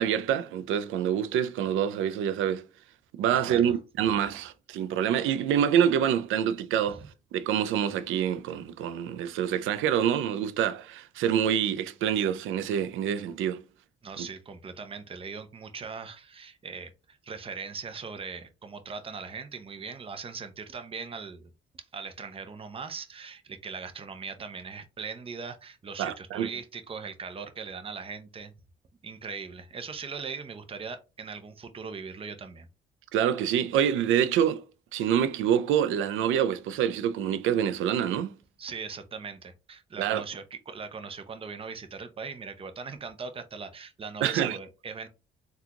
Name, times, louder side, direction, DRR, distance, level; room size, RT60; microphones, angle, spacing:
voice 1, 0.0-2.7 3.2-7.0 7.3-13.6 26.0-26.5 33.1-34.6 34.9-38.3 40.0-40.2 44.2-44.6, right 9 dB, 85° right, 0.4 m, -26 dB
voice 2, 3.3-3.8 14.0-28.5 29.0-32.7 38.6-45.1, right 5 dB, 30° right, 0.5 m, -40 dB
3.6 x 2.3 x 2.8 m
cardioid pair, 90°, 20 cm